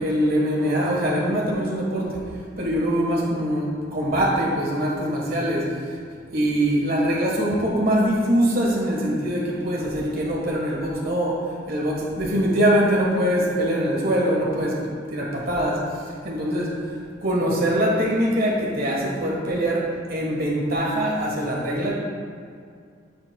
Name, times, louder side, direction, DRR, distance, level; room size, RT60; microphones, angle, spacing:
voice 1, 0.0-2.2 2.6-5.8 6.3-16.8 17.2-21.9, equal, 50° right, -3 dB, 1.3 m, -23 dB
11.0 x 6.8 x 2.3 m, 2.3 s
head